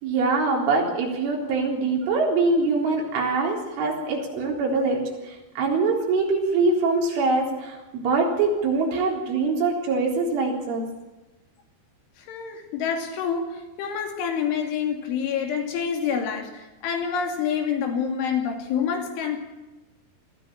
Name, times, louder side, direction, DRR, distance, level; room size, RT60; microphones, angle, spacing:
voice 1, 0.0-5.0 5.6-10.8, right 3 dB, 85° right, 6.3 m, -23 dB
voice 2, 12.2-19.4, left 7 dB, 85° left, 5.1 m, -27 dB
22.0 x 14.5 x 8.9 m
omnidirectional pair, 5.4 m